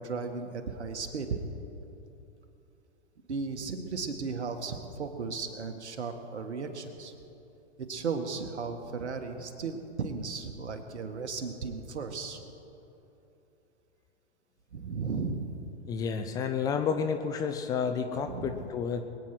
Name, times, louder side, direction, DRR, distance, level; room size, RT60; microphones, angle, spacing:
voice 1, 0.0-1.4 3.3-7.1 7.9-12.4 14.7-15.6 18.3-18.6, right 4 dB, 80° right, 6 dB, 1.8 m, -35 dB
voice 2, 15.9-19.0, left 6 dB, 10° left, 7 dB, 0.3 m, -30 dB
22.0 x 9.4 x 6.0 m, 3.0 s
hypercardioid pair, 120°, 33 cm